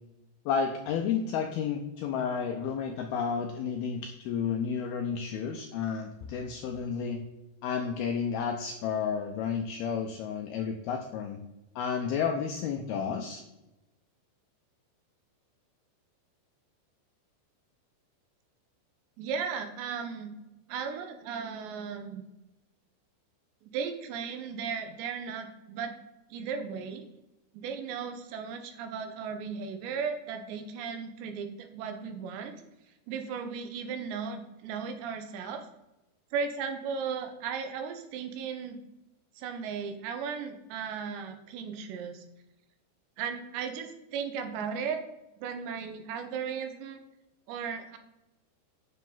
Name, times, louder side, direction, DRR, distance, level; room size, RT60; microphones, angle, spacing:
voice 1, 0.5-7.2 7.6-11.4 11.8-13.4, left 6 dB, 85° left, 4 dB, 2.2 m, -31 dB
voice 2, 19.2-20.4 20.7-22.2 23.6-25.9 26.3-27.1 27.5-32.6 33.1-35.7 36.3-38.8 39.4-42.2 43.2-45.0 45.4-47.0 47.5-48.0, right 6 dB, 80° right, 7 dB, 3.0 m, -36 dB
9.6 x 6.7 x 3.8 m, 0.97 s
omnidirectional pair, 5.3 m